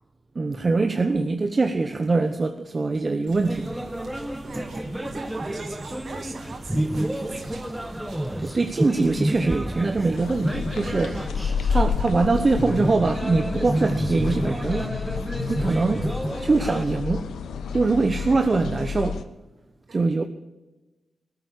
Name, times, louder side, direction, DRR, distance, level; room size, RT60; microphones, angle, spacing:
voice 1, 0.3-3.7 8.4-11.2 11.7-14.9 15.5-16.1 16.4-17.3 17.7-19.2 19.9-20.2, right 3 dB, 45° right, 1.1 m, -23 dB
sound 1, 3.3-11.3, right 2 dB, 80° right, 4.4 m, -44 dB
sound 2, 3.5-16.8, right 1 dB, 10° right, 1.6 m, -30 dB
voice 2, 4.4-7.9 18.2-18.4 19.9-20.0, right 4 dB, 60° right, 2.1 m, -41 dB
sound 3, 10.1-19.2, left 6 dB, 85° left, 0.9 m, -30 dB
18.5 x 9.2 x 8.1 m
supercardioid pair, 40°, 0 cm